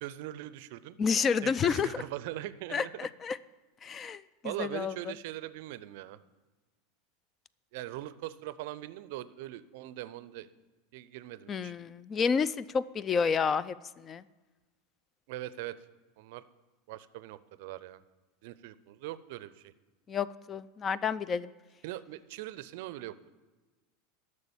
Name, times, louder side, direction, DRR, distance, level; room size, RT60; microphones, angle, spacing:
voice 1, 0.0-1.0 1.4-2.9 4.4-6.2 7.7-10.5 10.9-11.7 15.3-15.8 16.2-16.4 16.9-18.0 18.4-19.7 21.8-23.3, right 15 dB, 60° right, 16 dB, 0.5 m, -41 dB
voice 2, 1.0-2.0 2.7-3.4 3.8-4.9 11.5-14.2 20.1-21.5, left 6 dB, 30° left, 19 dB, 0.4 m, -30 dB
11.5 x 6.5 x 7.1 m, 1.2 s
figure-of-eight pair, 85°, 0 cm